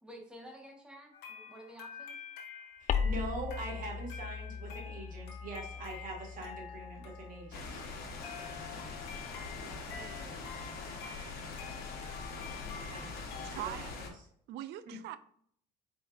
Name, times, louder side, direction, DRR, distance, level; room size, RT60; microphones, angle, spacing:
voice 1, 0.0-2.2 9.3-11.0, equal, 5° right, 0 dB, 1.4 m, -53 dB
sound 1, 1.1-13.5, left 6 dB, 85° left, 1.2 m, -49 dB
voice 2, 2.8-7.8 12.7-14.1 14.9-15.0, right 2 dB, 55° right, -1 dB, 1.8 m, -43 dB
sound 2, 2.9-7.7, left 6 dB, 45° left, 0.4 m, -38 dB
sound 3, 7.5-14.1, left 4 dB, 65° left, 1.1 m, -43 dB
voice 3, 13.5-14.0 14.5-15.2, right 12 dB, 80° right, 14 dB, 0.4 m, -41 dB
4.5 x 4.4 x 2.5 m, 0.65 s
cardioid pair, 110°, 17 cm